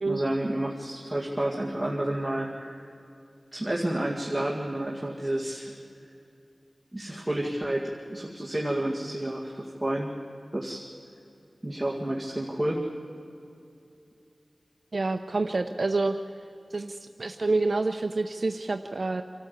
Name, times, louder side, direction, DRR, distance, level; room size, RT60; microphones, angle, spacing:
voice 1, 0.1-2.9 3.5-5.7 6.9-10.1 10.5-10.8 11.6-12.8, right 1 dB, 10° right, -2 dB, 2.1 m, -30 dB
voice 2, 14.9-16.2 16.7-19.2, right 3 dB, 50° right, 6 dB, 0.8 m, -27 dB
26.0 x 13.5 x 8.3 m, 2.7 s
wide cardioid pair, 75°, 0 cm